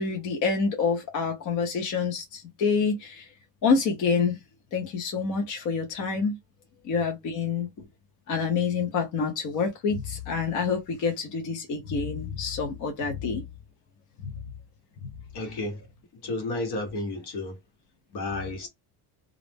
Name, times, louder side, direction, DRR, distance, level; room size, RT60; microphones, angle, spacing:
voice 1, 0.0-3.3 3.6-4.4 4.7-6.3 6.8-7.7 8.3-13.4 14.2-14.3 15.0-15.1, left 5 dB, 45° left, 0.7 m, -27 dB
voice 2, 15.3-15.9 16.2-17.6 18.1-18.7, left 2 dB, 65° left, 1.2 m, -32 dB
2.4 x 2.1 x 3.3 m
cardioid pair, 150°, 44 cm